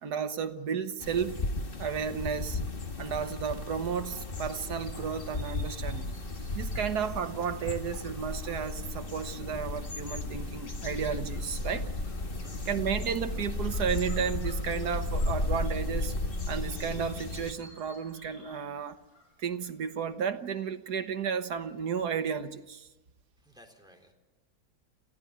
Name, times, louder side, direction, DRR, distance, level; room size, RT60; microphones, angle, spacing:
voice 1, 0.0-1.3 1.8-2.6 3.0-6.1 6.5-11.9 12.7-16.1 16.5-19.0 19.4-22.9, right 7 dB, 75° right, 8 dB, 1.8 m, -33 dB
sound 1, 1.0-17.5, left 2 dB, 35° left, 1.6 m, -35 dB
sound 2, 4.0-20.1, left 1 dB, 60° left, 7.4 m, -58 dB
voice 2, 12.4-12.8 23.4-24.1, equal, ahead, 3 dB, 3.7 m, -58 dB
27.0 x 16.0 x 9.6 m, 1.1 s
omnidirectional pair, 1.7 m